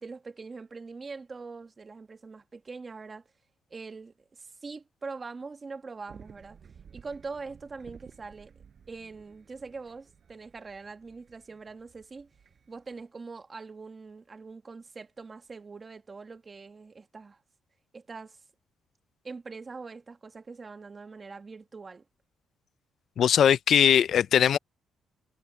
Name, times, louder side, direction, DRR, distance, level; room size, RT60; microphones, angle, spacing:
voice 1, 0.0-3.3 3.7-6.6 6.9-8.5 8.9-12.3 12.7-17.4 17.9-18.4 19.2-22.0, right 4 dB, 30° right, 1.6 m, -43 dB
sound 1, 6.1-13.0, right 7 dB, 50° right, 6.2 m, -55 dB
voice 2, 23.2-24.6, left 9 dB, 65° left, 0.4 m, -20 dB
cardioid pair, 90°, 0 cm